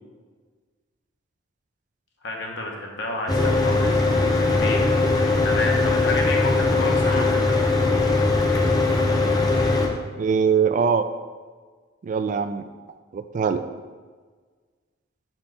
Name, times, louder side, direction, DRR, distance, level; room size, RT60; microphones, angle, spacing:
voice 1, 2.2-7.6, left 2 dB, 65° left, 0 dB, 1.0 m, -31 dB
Mechanical fan, 3.3-9.9, left 3 dB, 20° left, 0.7 m, -20 dB
voice 2, 10.2-11.1 12.0-12.7 13.1-13.6, right 6 dB, 40° right, 10 dB, 0.3 m, -22 dB
4.5 x 4.4 x 5.4 m, 1.5 s
head